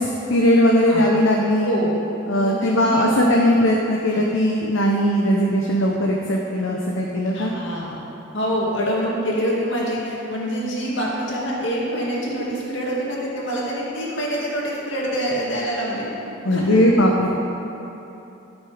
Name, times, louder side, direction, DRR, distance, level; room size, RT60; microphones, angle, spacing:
voice 1, 0.0-1.8 2.3-7.5 16.4-17.3, equal, 90° left, -1 dB, 0.9 m, -19 dB
voice 2, 1.6-2.0 2.4-3.4 4.1-4.2 7.3-8.0 8.3-16.1 16.5-16.8, equal, 70° left, -5 dB, 2.4 m, -26 dB
16.0 x 6.2 x 5.0 m, 3.0 s
head